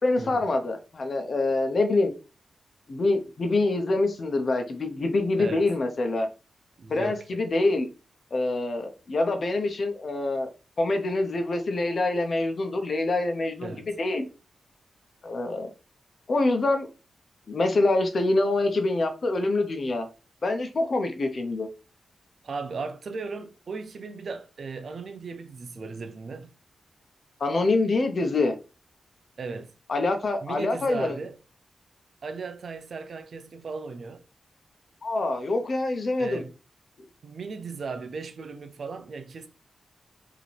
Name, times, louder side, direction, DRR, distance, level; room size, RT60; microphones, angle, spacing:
voice 1, 0.0-2.1 2.9-6.3 6.9-7.9 8.3-10.5 10.8-14.3 15.2-15.7 16.3-16.9 17.5-20.1 20.4-21.7 27.4-28.5 29.9-31.1 35.0-36.4, left 2 dB, 55° left, 0.9 m, -25 dB
voice 2, 6.8-7.4 13.6-13.9 22.4-26.5 29.4-29.7 30.4-31.4 32.2-34.2 36.2-36.5 37.2-39.5, right 4 dB, 65° right, 0.6 m, -36 dB
5.1 x 3.0 x 3.3 m
cardioid pair, 85°, 0 cm